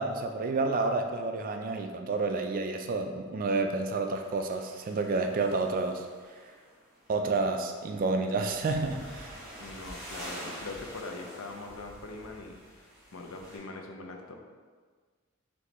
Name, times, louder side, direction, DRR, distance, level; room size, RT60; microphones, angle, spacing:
voice 1, 0.0-6.0 7.1-9.4, right 3 dB, 40° right, 5 dB, 0.3 m, -30 dB
sound 1, 4.1-13.6, equal, 5° right, 1.3 m, -47 dB
voice 2, 9.6-14.3, left 3 dB, 85° left, 2 dB, 0.5 m, -42 dB
4.2 x 3.1 x 3.0 m, 1.5 s
head